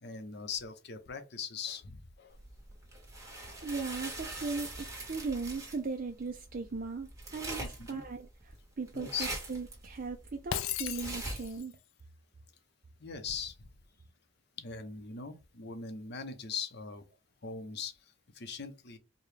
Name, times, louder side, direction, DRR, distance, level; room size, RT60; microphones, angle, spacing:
voice 1, 0.0-2.4 7.8-8.0 8.9-9.3 13.0-13.7 14.6-17.0 17.4-19.0, left 6 dB, 55° left, 0.8 m, -40 dB
sound 1, 2.4-11.6, right 2 dB, 15° right, 1.4 m, -43 dB
voice 2, 3.3-11.8, right 4 dB, 45° right, 0.5 m, -38 dB
Shatter, 10.5-11.7, left 11 dB, 85° left, 0.4 m, -36 dB
4.8 x 2.3 x 3.3 m
head